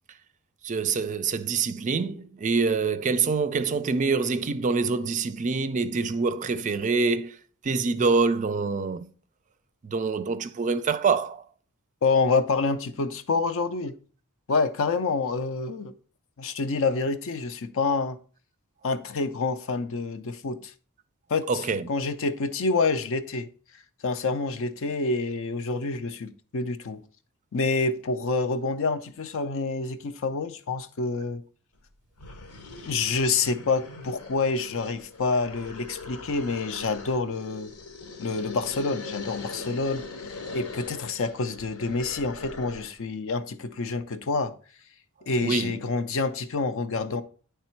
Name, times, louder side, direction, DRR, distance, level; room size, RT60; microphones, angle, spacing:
voice 1, 0.6-7.4 7.6-9.1 9.8-11.4 21.5-21.9 45.4-45.8, right 4 dB, 35° right, 0.4 m, -25 dB
voice 2, 12.0-14.0 14.5-15.9 16.4-18.2 18.8-20.7 21.3-23.5 24.0-27.0 27.5-31.4 32.9-37.7 38.2-44.5 45.3-47.2, left 4 dB, 65° left, 0.6 m, -27 dB
sound 1, 31.8-31.9 32.2-43.0, left 3 dB, 85° left, 1.0 m, -41 dB
9.5 x 3.4 x 4.4 m
head